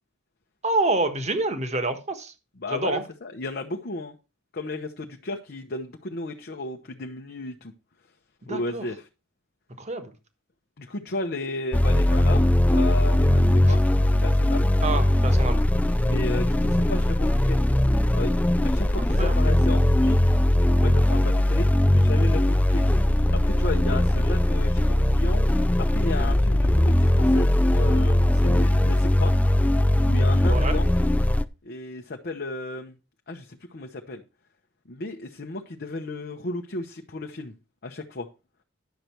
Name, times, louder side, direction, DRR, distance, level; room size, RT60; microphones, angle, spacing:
voice 1, 0.6-2.3 2.7-3.0 8.4-8.9 9.8-10.1 14.8-15.6 19.0-19.4 30.5-30.8, right 2 dB, 35° right, 1.4 m, -27 dB
voice 2, 2.6-4.2 4.5-7.7 8.5-9.1 10.8-14.7 16.0-17.6 18.1-18.3 18.6-20.3 20.8-22.8 23.3-25.5 25.9-29.3 30.0-30.9 31.6-33.0 33.3-34.2 34.9-37.5 37.8-38.3, left 2 dB, 50° left, 0.9 m, -34 dB
sound 1, 11.7-31.4, left 1 dB, 5° left, 0.4 m, -20 dB
10.5 x 6.7 x 4.5 m
head